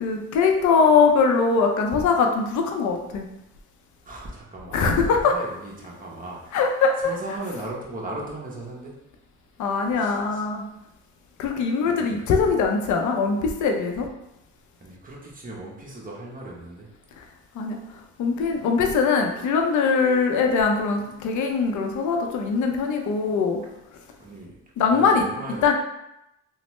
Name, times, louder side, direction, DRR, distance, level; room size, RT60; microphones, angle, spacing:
voice 1, 0.0-3.2 4.7-5.3 6.5-6.9 9.6-10.6 11.4-14.1 17.6-17.8 18.2-23.6 24.8-25.2 25.6-25.7, left 5 dB, 70° left, 3 dB, 0.6 m, -21 dB
voice 2, 4.0-6.7 7.0-8.9 9.9-10.4 11.8-12.3 14.8-16.9 24.2-24.6 24.9-25.7, right 1 dB, 30° right, -3 dB, 0.9 m, -37 dB
3.1 x 2.1 x 3.0 m, 0.88 s
cardioid pair, 90°, 30 cm